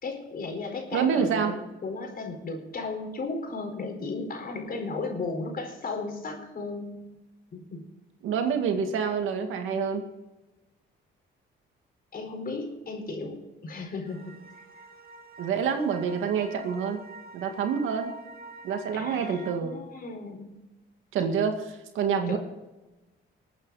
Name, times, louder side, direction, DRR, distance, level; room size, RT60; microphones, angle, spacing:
voice 1, 0.0-7.2 7.5-7.8 12.1-14.4 18.9-20.5 22.3-22.4, left 3 dB, 50° left, 3 dB, 4.6 m, -35 dB
voice 2, 0.9-1.5 8.2-10.0 15.4-17.0 17.3-18.1 18.6-19.7 21.1-22.4, right 6 dB, 85° right, 5 dB, 2.2 m, -27 dB
sound 1, 14.1-19.6, right 3 dB, 50° right, 2.3 m, -46 dB
21.0 x 8.9 x 4.1 m, 1.1 s
cardioid pair, 90°, 20 cm